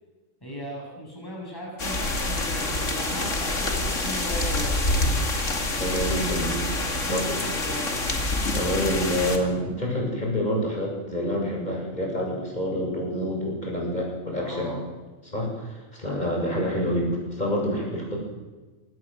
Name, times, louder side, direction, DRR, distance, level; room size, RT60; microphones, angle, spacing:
voice 1, 0.4-4.7 6.8-7.9 14.4-14.8, right 1 dB, 15° left, -2 dB, 7.9 m, -37 dB
sound 1, 1.8-9.4, left 2 dB, 65° left, 3.0 m, -26 dB
voice 2, 5.7-6.6 7.1-7.3 8.5-14.8 15.3-18.2, equal, 30° left, -1 dB, 7.9 m, -27 dB
22.5 x 19.0 x 7.8 m, 1.2 s
omnidirectional pair, 1.4 m